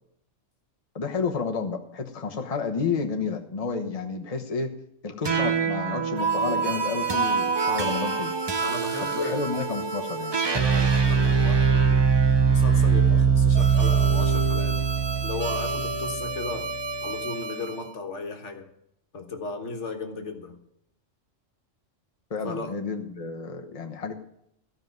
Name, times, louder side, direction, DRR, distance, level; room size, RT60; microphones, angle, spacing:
voice 1, 0.9-4.7 5.0-8.3 9.1-10.4 22.3-24.1, left 5 dB, 30° left, 3 dB, 1.1 m, -30 dB
sound 1, 5.2-17.8, right 5 dB, 25° right, 0.7 m, -23 dB
voice 2, 8.6-9.5 10.5-14.8 15.2-16.7 17.0-18.7 19.1-20.6 22.4-22.8, left 3 dB, 65° left, 5 dB, 1.6 m, -35 dB
14.5 x 5.5 x 9.3 m, 0.75 s
omnidirectional pair, 1.3 m